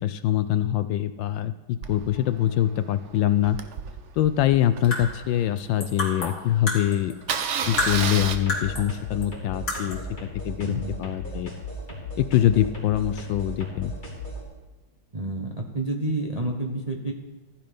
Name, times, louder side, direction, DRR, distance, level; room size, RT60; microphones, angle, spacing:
voice 1, 0.0-3.6 4.2-7.2 7.7-10.0 10.4-11.5 12.2-13.9, left 12 dB, 75° left, 12 dB, 1.2 m, -24 dB
Engine starting, 1.8-6.0 6.5-6.6 6.8-6.9 7.2-8.4, right 7 dB, 75° right, 0.6 m, -32 dB
sound 1, 4.7-7.5 7.8-9.0 9.2-9.3 9.7-10.1, left 2 dB, 50° left, 3.3 m, -30 dB
sound 2, 7.6-14.4, equal, 20° left, 3.7 m, -36 dB
voice 2, 10.6-11.0 15.1-17.1, right 2 dB, 30° right, 1 dB, 0.8 m, -29 dB
15.0 x 10.0 x 5.2 m, 1.2 s
omnidirectional pair, 2.2 m